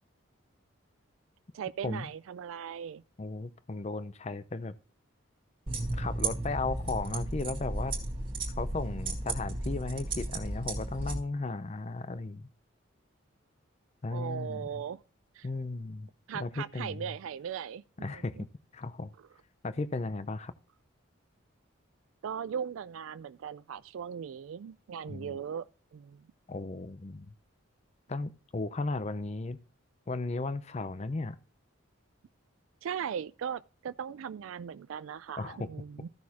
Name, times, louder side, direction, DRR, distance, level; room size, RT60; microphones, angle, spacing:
voice 1, 1.5-3.0 14.1-15.0 15.3-15.5 16.3-18.4 22.2-25.7 25.9-26.2 32.8-36.1, right 8 dB, 75° right, 0.3 m, -38 dB
voice 2, 3.2-4.8 5.9-8.0 8.6-12.5 14.0-14.8 15.4-17.1 18.0-18.5 18.7-19.1 19.6-20.5 25.1-25.4 26.5-27.3 28.1-29.6 30.1-31.4 35.4-35.7, left 3 dB, 30° left, 0.5 m, -35 dB
sound 1, 5.7-11.2, right 2 dB, 25° right, 2.0 m, -34 dB
14.5 x 6.2 x 2.8 m
head